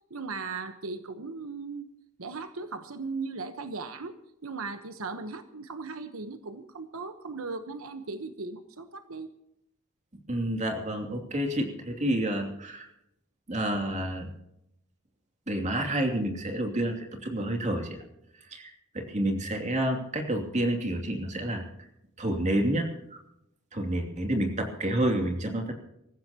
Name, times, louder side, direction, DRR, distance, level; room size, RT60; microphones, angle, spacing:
voice 1, 0.1-1.9 2.2-4.2 4.4-9.3, right 4 dB, 85° right, 9 dB, 1.1 m, -37 dB
voice 2, 10.3-12.9 13.5-14.3 15.5-18.0 18.3-21.9 22.2-23.2 23.7-25.7, right 1 dB, 35° right, 3 dB, 2.8 m, -29 dB
25.5 x 15.0 x 2.9 m, 0.81 s
head